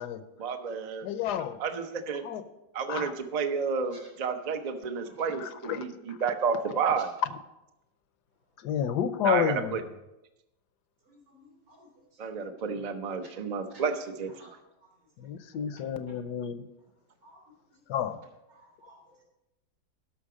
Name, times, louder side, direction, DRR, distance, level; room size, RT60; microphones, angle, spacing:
voice 1, 0.4-1.1 1.6-2.2 2.7-7.1 9.2-9.8 12.2-14.3, right 6 dB, 65° right, 8 dB, 0.4 m, -31 dB
voice 2, 1.0-1.6 2.2-2.4 2.9-3.1 5.4-6.2 8.6-9.7 15.2-16.7 17.9-18.2, left 9 dB, 75° left, 11 dB, 1.2 m, -31 dB
voice 3, 11.1-11.9 12.2-12.3 13.7-13.8 14.4-14.5 17.2-17.4 18.5-19.0, equal, 85° right, -3 dB, 3.9 m, -55 dB
12.5 x 5.8 x 4.9 m, 0.95 s
omnidirectional pair, 1.9 m